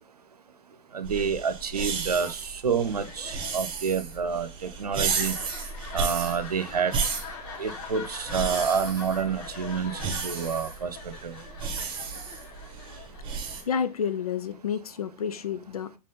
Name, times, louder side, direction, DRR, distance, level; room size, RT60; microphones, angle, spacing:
voice 1, 0.9-5.3 5.9-7.0 7.6-11.0 11.2-11.3, right 6 dB, 70° right, 0.8 m, -28 dB
sound 1, 1.0-13.6, right 5 dB, 25° right, 1.6 m, -33 dB
sound 2, 2.7-14.4, left 5 dB, 45° left, 2.3 m, -43 dB
voice 2, 13.7-16.0, left 7 dB, 65° left, 0.7 m, -30 dB
7.4 x 4.2 x 3.7 m
figure-of-eight pair, 100°, 20 cm